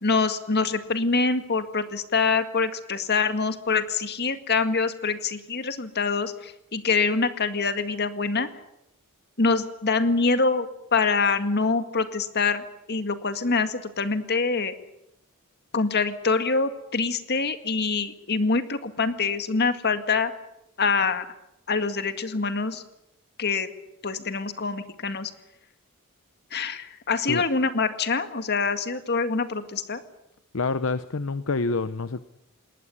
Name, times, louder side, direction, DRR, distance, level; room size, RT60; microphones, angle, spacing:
voice 1, 0.0-8.5 9.4-14.7 15.7-20.3 20.8-21.3 21.7-22.8 23.4-23.7 24.0-25.3 26.5-30.0, left 4 dB, 50° left, 9 dB, 1.9 m, -25 dB
voice 2, 30.5-32.2, left 3 dB, 70° left, 13 dB, 0.8 m, -27 dB
20.5 x 18.5 x 9.6 m, 0.84 s
head